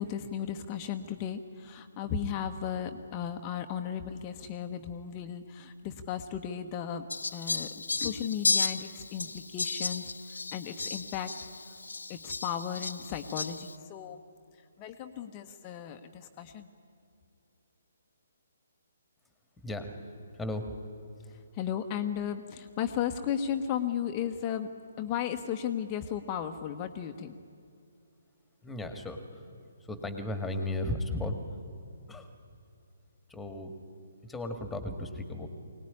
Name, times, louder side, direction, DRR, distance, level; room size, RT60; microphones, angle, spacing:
voice 1, 0.0-7.1 7.3-7.7 7.9-11.3 12.1-14.2 14.8-16.7 21.3-24.7 25.0-27.3, left 9 dB, 25° left, 6 dB, 1.0 m, -35 dB
Fowl, 7.1-13.8, left 3 dB, 70° left, 0.6 m, -34 dB
voice 2, 19.6-20.0 20.3-20.7 21.2-21.3 28.6-29.4 29.8-31.4 32.1-32.3 33.3-33.8 34.2-35.5, left 1 dB, 5° left, 7 dB, 2.0 m, -35 dB
23.5 x 19.0 x 9.9 m, 2.5 s
figure-of-eight pair, 135°, 0 cm